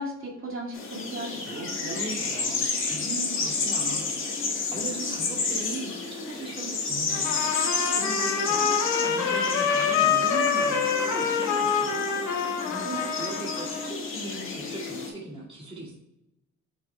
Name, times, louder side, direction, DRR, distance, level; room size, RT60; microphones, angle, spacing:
voice 1, 0.0-2.6, equal, 45° right, -2 dB, 2.3 m, -36 dB
sound 1, 0.7-15.1, left 4 dB, 45° left, 1.9 m, -31 dB
voice 2, 2.9-4.4 4.7-12.0 12.7-15.9, right 2 dB, 20° right, -4 dB, 2.0 m, -38 dB
Trumpet, 7.1-13.9, left 6 dB, 80° left, 1.4 m, -26 dB
5.6 x 5.2 x 3.3 m, 0.91 s
cardioid pair, 90°, 30 cm